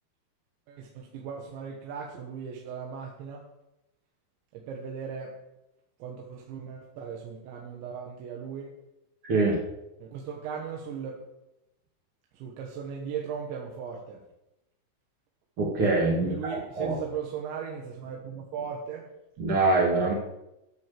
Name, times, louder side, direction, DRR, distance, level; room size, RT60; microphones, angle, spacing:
voice 1, 0.7-3.4 4.5-5.3 6.0-8.7 10.0-11.2 12.3-14.2 16.2-19.1, right 7 dB, 70° right, -1 dB, 3.6 m, -37 dB
voice 2, 9.2-9.6 15.6-16.3 16.8-17.0 19.4-20.1, right 3 dB, 45° right, -4 dB, 1.8 m, -23 dB
14.0 x 6.5 x 7.6 m, 0.91 s
omnidirectional pair, 5.5 m